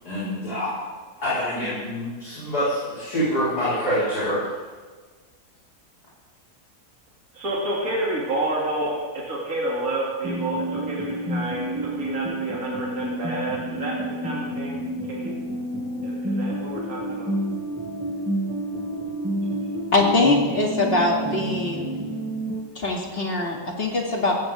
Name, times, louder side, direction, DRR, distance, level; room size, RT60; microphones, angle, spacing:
voice 1, 0.0-0.7 1.1-4.4, equal, 70° left, -11 dB, 5.1 m, -26 dB
voice 2, 7.3-14.8 15.1-15.3 16.0-17.3, right 2 dB, 60° right, -5 dB, 3.0 m, -29 dB
sound 1, 10.2-22.6, right 1 dB, 10° right, 2.1 m, -29 dB
voice 3, 19.9-21.9 22.7-24.3, left 2 dB, 35° left, -1 dB, 2.5 m, -22 dB
17.5 x 15.0 x 3.6 m, 1.4 s
omnidirectional pair, 1.7 m